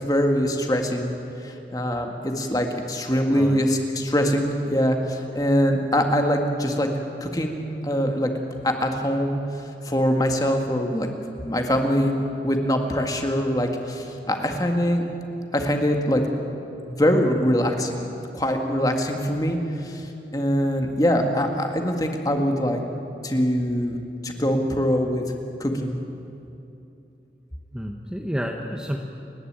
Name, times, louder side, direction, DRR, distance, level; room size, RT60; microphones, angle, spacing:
voice 1, 0.1-1.1 1.4-6.9 7.2-8.3 8.6-11.1 11.4-12.2 12.4-15.1 15.5-16.2 17.0-18.1 18.3-22.8 23.2-24.0 24.2-25.2 25.6-26.0, equal, 20° left, 4 dB, 1.8 m, -23 dB
voice 2, 3.3-3.7 27.7-29.0, equal, 5° right, 1 dB, 1.0 m, -30 dB
29.5 x 11.0 x 8.9 m, 2.8 s
head